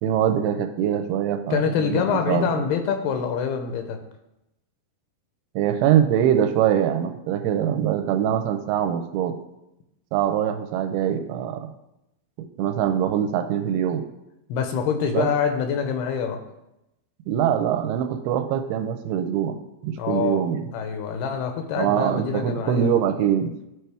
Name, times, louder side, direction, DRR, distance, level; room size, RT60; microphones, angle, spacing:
voice 1, 0.0-2.5 5.6-9.4 10.1-11.6 12.4-14.0 15.1-15.3 17.3-19.6 19.8-20.7 21.8-23.7, right 9 dB, 85° right, 7 dB, 2.5 m, -23 dB
voice 2, 1.5-4.0 14.5-16.4 20.0-20.4 20.7-22.9, left 7 dB, 80° left, 6 dB, 2.7 m, -25 dB
12.0 x 4.5 x 3.4 m, 0.88 s
omnidirectional pair, 4.6 m